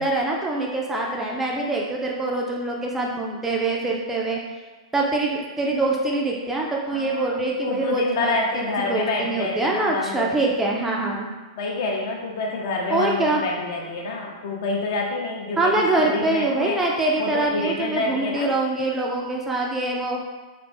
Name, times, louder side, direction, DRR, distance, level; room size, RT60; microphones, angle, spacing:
voice 1, 0.0-4.4 4.9-11.3 12.9-13.4 15.6-20.2, right 2 dB, 10° right, -2 dB, 0.4 m, -24 dB
voice 2, 6.9-7.4 7.6-10.5 11.6-16.8 17.2-18.5, left 3 dB, 50° left, 0 dB, 0.6 m, -27 dB
3.1 x 2.4 x 3.3 m, 1.3 s
figure-of-eight pair, 105°, 3 cm